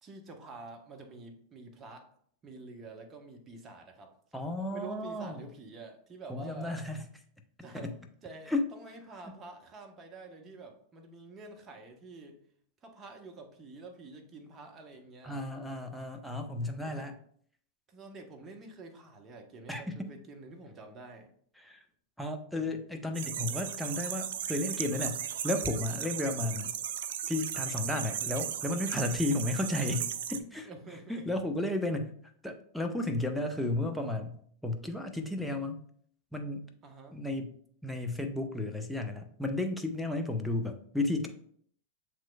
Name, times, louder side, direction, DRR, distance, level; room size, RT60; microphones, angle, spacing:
voice 1, 0.0-2.1 2.4-4.1 4.7-6.7 7.6-7.9 8.2-12.4 12.8-15.4 16.8-17.1 17.9-21.3 30.5-31.3 36.8-37.2, right 3 dB, 25° right, 3 dB, 0.9 m, -48 dB
voice 2, 4.3-5.4 6.3-7.0 7.8-7.9 8.5-8.7 15.2-17.1 19.7-20.1 21.6-21.8 22.2-25.2 25.4-26.7 27.3-30.7 31.1-32.1 32.4-34.4 34.6-35.8 36.3-36.6 37.1-37.5 37.8-41.3, left 2 dB, ahead, 3 dB, 0.7 m, -33 dB
sound 1, 23.1-30.4, right 9 dB, 65° right, 0.3 m, -36 dB
7.2 x 3.1 x 2.3 m, 0.62 s
hypercardioid pair, 95°, 0 cm